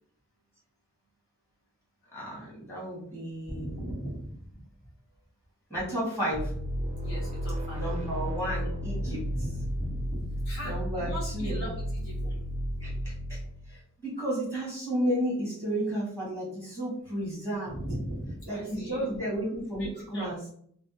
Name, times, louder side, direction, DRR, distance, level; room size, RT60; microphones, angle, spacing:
voice 1, 2.1-3.8 5.7-6.5 7.7-9.2 10.6-11.7 12.2-12.3 12.8-13.4 13.7-17.8 18.4-20.5, right 1 dB, 10° left, -7 dB, 1.0 m, -33 dB
voice 2, 3.5-4.7 7.0-7.8 9.0-12.2 17.7-19.1 19.8-20.3, equal, 70° left, -5 dB, 1.2 m, -39 dB
sound 1, 6.3-13.8, equal, 30° right, 0.3 m, -33 dB
2.5 x 2.0 x 2.7 m, 0.63 s
head